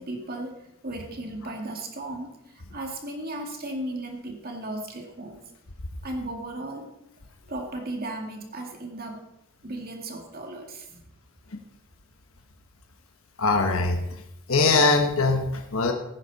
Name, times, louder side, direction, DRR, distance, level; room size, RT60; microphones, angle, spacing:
voice 1, 0.0-5.4 6.0-6.9 7.5-9.2 9.6-11.0, right 1 dB, 45° right, 2 dB, 2.2 m, -36 dB
voice 2, 13.4-14.0 14.5-15.9, left 3 dB, 70° left, 4 dB, 1.2 m, -21 dB
16.5 x 10.0 x 4.1 m, 0.86 s
head